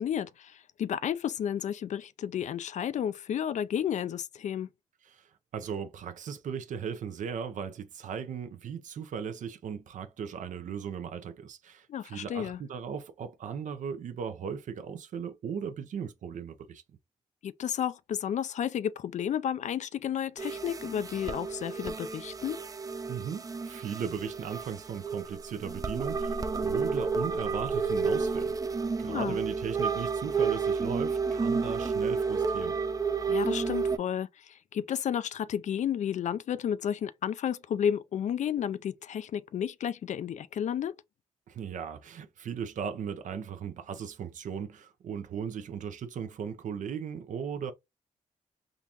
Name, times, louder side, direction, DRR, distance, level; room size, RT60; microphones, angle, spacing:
voice 1, 0.0-4.7 11.9-12.6 17.4-22.6 29.1-29.4 33.3-40.9, left 9 dB, 65° left, 0.4 m, -32 dB
voice 2, 5.0-16.8 23.1-28.5 29.0-32.8 41.5-47.7, right 7 dB, 75° right, 0.6 m, -37 dB
sound 1, 20.4-34.0, right 5 dB, 25° right, 0.4 m, -31 dB
3.7 x 2.5 x 2.8 m
cardioid pair, 60°, 13 cm